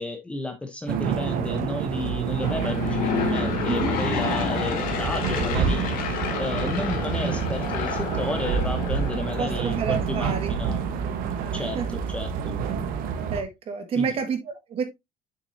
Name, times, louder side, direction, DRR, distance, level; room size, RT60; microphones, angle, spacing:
voice 1, 0.0-10.8 11.5-11.8 12.1-12.3 14.0-14.2, left 2 dB, 10° left, 0.8 m, -32 dB
sound 1, 0.9-13.4, right 7 dB, 70° right, 1.2 m, -28 dB
Aircraft / Engine, 2.2-10.2, left 6 dB, 70° left, 2.1 m, -30 dB
voice 2, 3.6-4.0 9.4-10.6 11.5-11.9 13.3-14.8, right 6 dB, 40° right, 1.5 m, -29 dB
7.0 x 6.1 x 2.7 m
cardioid pair, 160°, 15 cm